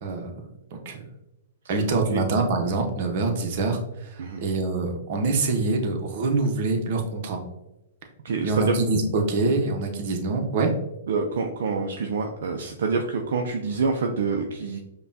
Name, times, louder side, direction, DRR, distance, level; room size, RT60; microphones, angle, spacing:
voice 1, 1.7-7.4 8.4-10.7, right 3 dB, 55° right, 3 dB, 0.8 m, -25 dB
voice 2, 8.2-8.7 11.1-14.8, right 4 dB, 70° right, 2 dB, 0.4 m, -26 dB
5.1 x 2.2 x 2.6 m, 0.94 s
hypercardioid pair, 125°, 0 cm